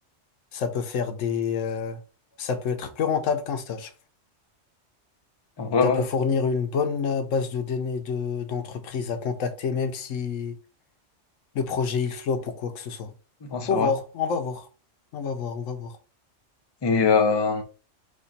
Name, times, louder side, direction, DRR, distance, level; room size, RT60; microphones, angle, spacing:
voice 1, 0.5-2.0 2.4-3.9 5.8-10.6 11.5-13.1 13.7-14.7 15.1-15.9, left 6 dB, 90° left, 1.1 m, -27 dB
voice 2, 5.6-6.1 13.4-13.9 16.8-17.6, left 5 dB, 30° left, 0.5 m, -22 dB
4.9 x 2.4 x 4.2 m
omnidirectional pair, 1.3 m